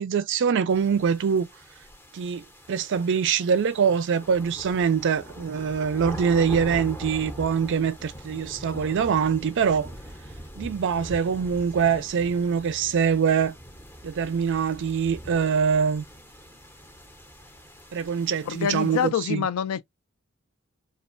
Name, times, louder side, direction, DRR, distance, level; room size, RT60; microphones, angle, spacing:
voice 1, 0.0-1.5 2.1-9.9 10.6-13.5 14.0-16.0 17.9-19.5, right 6 dB, 55° right, 0.4 m, -24 dB
sound 1, 0.7-19.1, equal, 10° left, 0.6 m, -42 dB
voice 2, 18.5-19.8, left 8 dB, 70° left, 0.3 m, -26 dB
2.3 x 2.2 x 2.5 m
head